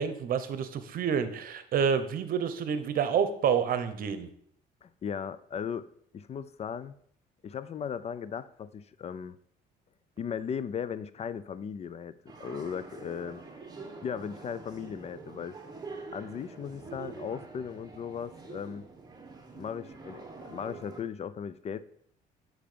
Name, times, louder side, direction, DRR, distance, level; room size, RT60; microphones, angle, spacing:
voice 1, 0.0-4.3, right 7 dB, 60° right, 11 dB, 1.0 m, -28 dB
voice 2, 4.8-5.8 6.1-6.9 7.4-9.4 10.2-13.4 14.0-15.6 16.1-18.9 19.6-21.8, left 7 dB, 40° left, 15 dB, 0.5 m, -37 dB
sound 1, 12.3-21.0, right 4 dB, 25° right, 1.7 m, -46 dB
8.7 x 6.3 x 5.1 m, 0.65 s
cardioid pair, 110°, 17 cm